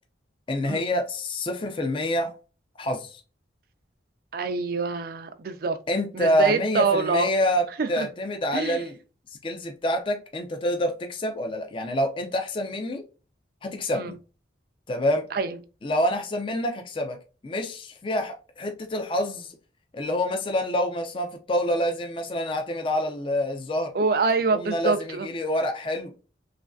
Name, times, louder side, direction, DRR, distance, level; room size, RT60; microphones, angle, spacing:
voice 1, 0.5-2.3 2.8-3.2 5.9-9.0 9.4-13.0 13.6-14.2 14.9-15.3 15.8-17.2 17.4-19.5 19.9-23.9 24.5-26.1, left 1 dB, 25° left, 0.4 m, -27 dB
voice 2, 4.3-5.8 6.1-7.3 7.8-8.1 8.5-8.8 13.9-14.1 15.3-15.6 23.9-25.3, right 4 dB, 50° right, 0.4 m, -25 dB
3.1 x 2.4 x 2.2 m
head